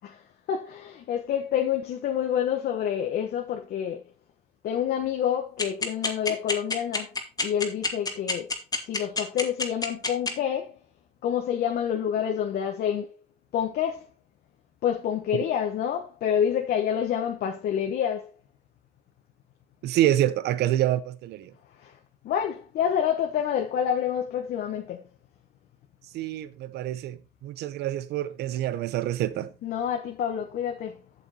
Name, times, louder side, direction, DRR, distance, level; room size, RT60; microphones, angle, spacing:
voice 1, 0.5-4.0 4.6-7.1 7.4-8.5 8.8-10.8 11.2-13.1 13.5-14.1 14.8-18.3 21.8-22.0 22.2-25.1 29.6-31.0, left 9 dB, 65° left, 1.3 m, -28 dB
sound 1, 5.6-10.3, left 3 dB, 20° left, 2.1 m, -26 dB
voice 2, 19.8-21.5 26.1-29.5, right 13 dB, 75° right, 0.7 m, -27 dB
8.1 x 7.3 x 4.1 m
cardioid pair, 110°, 17 cm